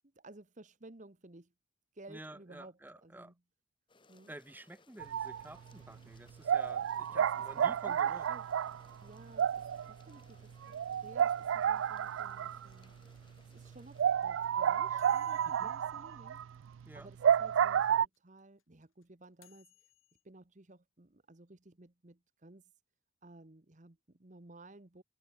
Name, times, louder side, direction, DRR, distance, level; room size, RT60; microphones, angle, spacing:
voice 1, 0.1-1.5 1.9-3.3 4.1-4.3 7.6-7.8 8.0-8.4 9.0-10.5 11.0-13.0 13.4-16.4 16.9-19.9 20.2-22.8 23.2-25.0, right 2 dB, 40° right, 1.2 m, -56 dB
voice 2, 2.1-3.3 4.3-8.3 15.4-15.7 16.9-17.1, right 1 dB, 10° right, 0.7 m, -51 dB
sound 1, 3.9-14.0, left 3 dB, 25° left, 2.4 m, -65 dB
sound 2, 5.0-5.4 5.8-5.9 6.5-12.8 13.2-13.3 13.6-13.7 14.0-18.1, right 8 dB, 75° right, 0.3 m, -31 dB
sound 3, 12.2-17.4 17.6-17.7 17.9-20.2, left 13 dB, 90° left, 5.0 m, -66 dB
head